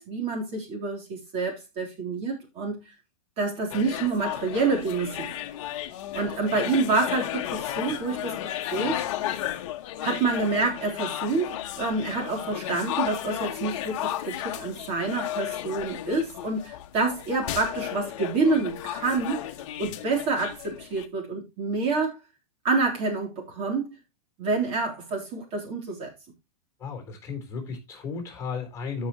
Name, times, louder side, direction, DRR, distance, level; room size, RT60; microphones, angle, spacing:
voice 1, 0.0-2.8 3.4-5.3 6.1-9.1 10.0-19.5 19.8-22.2 22.6-24.0 24.4-26.1, right 3 dB, 30° right, 3.6 m, -28 dB
sound 1, 3.7-21.1, left 13 dB, 55° left, 1.0 m, -34 dB
voice 2, 26.8-29.1, left 5 dB, 15° left, 4.0 m, -34 dB
14.0 x 5.8 x 3.0 m
hypercardioid pair, 150°, 19 cm